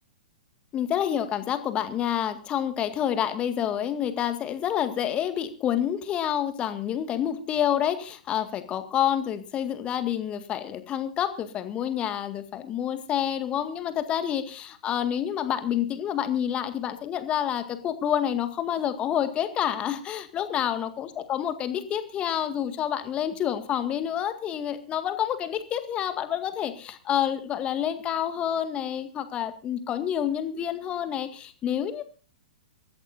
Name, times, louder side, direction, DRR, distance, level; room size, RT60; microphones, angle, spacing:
voice 1, 0.7-32.0, left 10 dB, 25° left, 9 dB, 1.9 m, -28 dB
25.0 x 14.0 x 2.7 m, 0.35 s
figure-of-eight pair, 110°, 4 cm